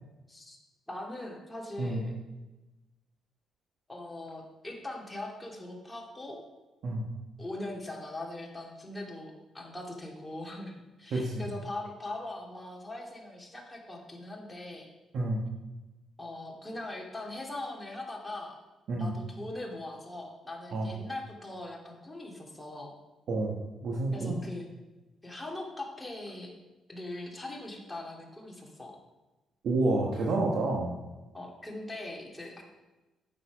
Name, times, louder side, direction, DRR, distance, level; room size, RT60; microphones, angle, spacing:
voice 1, 0.9-2.1 3.9-6.4 7.4-14.9 16.2-18.6 19.0-22.9 24.1-24.7 25.2-26.5 26.9-29.0 31.3-32.6, left 2 dB, 10° left, -1 dB, 2.2 m, -41 dB
voice 2, 11.1-11.4 15.1-15.4 18.9-19.1 20.7-20.9 23.3-24.3 29.6-30.9, right 2 dB, 65° right, -2 dB, 1.3 m, -29 dB
8.5 x 6.6 x 5.1 m, 1.1 s
cardioid pair, 90°, 0 cm